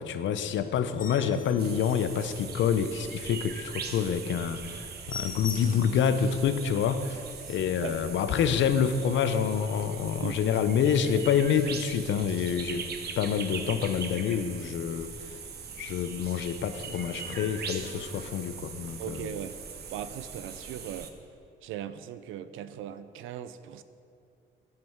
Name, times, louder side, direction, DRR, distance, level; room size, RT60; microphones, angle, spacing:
voice 1, 0.0-7.2 7.5-12.9 13.2-15.4 15.8-19.3, left 7 dB, 70° left, 10 dB, 0.6 m, -27 dB
sound 1, 0.8-3.0 3.4-3.5 3.9-4.0 4.3-4.4 4.7-6.0 6.5-6.6 7.0-7.1 7.3-7.8 8.5-8.7, left 5 dB, 45° left, 1.0 m, -42 dB
sound 2, 1.6-21.1, right 6 dB, 55° right, 0.9 m, -41 dB
voice 2, 19.0-19.6 19.9-21.1 21.6-23.8, right 10 dB, 90° right, 13 dB, 0.5 m, -38 dB
9.5 x 7.4 x 4.5 m, 2.5 s
cardioid pair, 90°, 20 cm